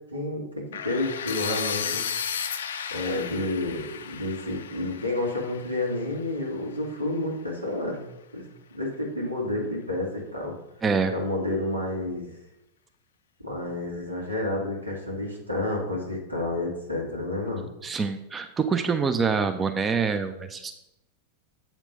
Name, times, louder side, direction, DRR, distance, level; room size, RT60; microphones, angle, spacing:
voice 1, 0.1-2.0 2.9-8.0 8.3-8.4 8.7-10.6 11.1-12.2 13.4-17.7, left 2 dB, 90° right, -2 dB, 1.9 m, -30 dB
sound 1, 0.7-6.6, left 7 dB, 65° left, 0.4 m, -34 dB
voice 2, 10.8-11.1 17.8-20.8, right 5 dB, 20° right, 8 dB, 0.5 m, -26 dB
7.6 x 4.5 x 5.2 m, 0.85 s
figure-of-eight pair, 90°, 0 cm